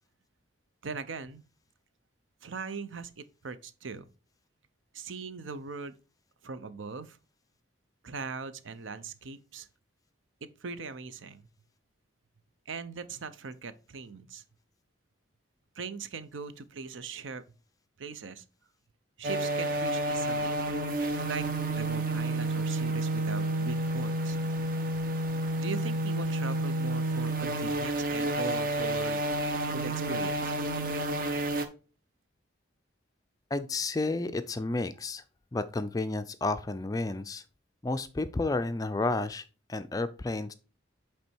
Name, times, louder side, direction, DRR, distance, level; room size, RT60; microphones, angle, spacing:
voice 1, 0.8-1.4 2.4-4.0 4.9-5.9 6.4-7.2 8.0-9.7 10.6-11.5 12.7-14.4 15.8-17.4 18.0-18.4 19.2-20.6 21.2-21.5 21.7-24.4 25.6-29.2 29.7-30.5, right 4 dB, 80° right, 0.7 m, -40 dB
sound 1, 19.2-31.7, right 1 dB, 45° right, 0.8 m, -30 dB
voice 2, 33.5-35.2 35.5-37.4 37.8-40.5, left 2 dB, 20° left, 0.3 m, -31 dB
8.3 x 3.3 x 4.4 m
head